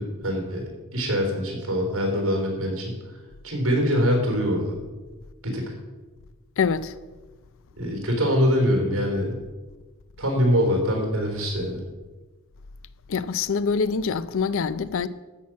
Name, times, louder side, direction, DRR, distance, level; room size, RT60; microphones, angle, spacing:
voice 1, 0.0-2.9 3.4-4.8 5.4-5.7 7.8-9.3 10.2-11.8, equal, 65° right, 3.7 m, -24 dB
voice 2, 6.6-7.0 13.1-15.1, left 5 dB, 60° left, 0.5 m, -25 dB
13.5 x 6.0 x 7.4 m
head